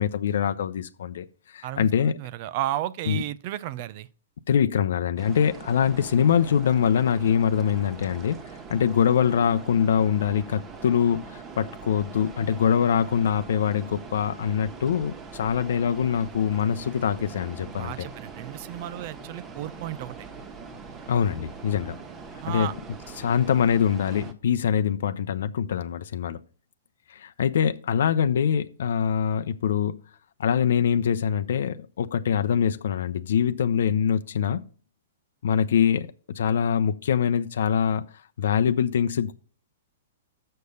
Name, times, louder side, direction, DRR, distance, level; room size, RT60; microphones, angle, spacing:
voice 1, 0.0-2.2 3.1-3.2 4.5-8.4 8.7-18.1 21.1-22.0 22.5-22.7 23.2-26.4 27.1-30.0 30.4-34.6 35.4-36.1 36.3-38.0 38.4-39.3, left 8 dB, 70° left, 0.6 m, -24 dB
voice 2, 1.6-4.1 17.7-20.2 22.4-22.7, right 13 dB, 50° right, 0.6 m, -33 dB
sound 1, 5.2-24.3, right 4 dB, 25° right, 1.4 m, -42 dB
6.6 x 6.6 x 5.4 m
hypercardioid pair, 120°, 0 cm